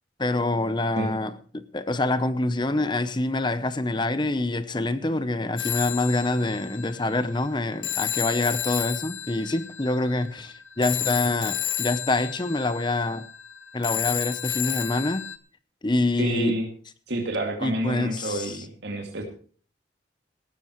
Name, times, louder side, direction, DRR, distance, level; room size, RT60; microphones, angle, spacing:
voice 1, 0.2-13.3 13.7-15.3 15.8-16.6 17.6-18.6, left 2 dB, 25° left, 0.7 m, -26 dB
Telephone, 5.6-15.4, left 11 dB, 80° left, 1.1 m, -32 dB
voice 2, 16.2-16.7 17.1-19.2, right 1 dB, 65° right, 2.4 m, -28 dB
18.0 x 13.0 x 3.1 m
head